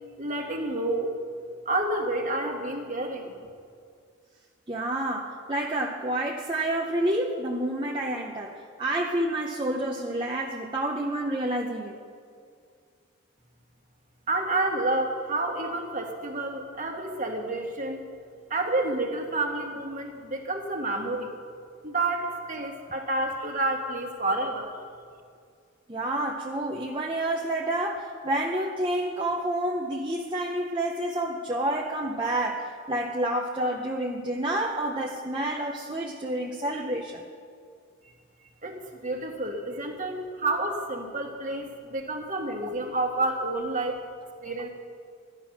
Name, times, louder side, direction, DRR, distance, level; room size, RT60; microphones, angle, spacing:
voice 1, 0.2-1.1 1.6-3.3 14.3-18.0 18.5-21.3 21.8-24.7 38.6-38.8 39.0-44.0 44.4-44.7, right 2 dB, 40° right, 2 dB, 1.6 m, -29 dB
voice 2, 4.7-12.0 25.9-37.2, right 1 dB, 20° right, -1 dB, 0.8 m, -29 dB
14.0 x 11.0 x 5.9 m, 2.2 s
head